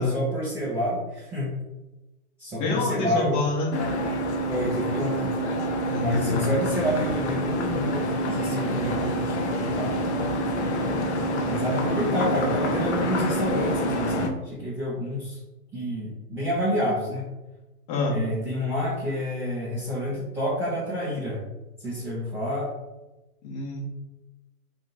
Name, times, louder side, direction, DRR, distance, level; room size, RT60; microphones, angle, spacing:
voice 1, 0.0-1.5 2.4-3.5 4.5-5.3 6.0-10.0 11.5-15.4 15.7-17.2 18.1-21.4 21.8-22.7, equal, 5° right, -10 dB, 0.5 m, -29 dB
voice 2, 2.6-3.7 5.8-6.5 17.9-18.2 23.4-23.8, left 3 dB, 30° left, -2 dB, 1.2 m, -26 dB
sound 1, 3.7-14.3, equal, 50° left, 0.7 m, -27 dB
3.7 x 2.5 x 4.1 m, 1.0 s
figure-of-eight pair, 115°, 45 cm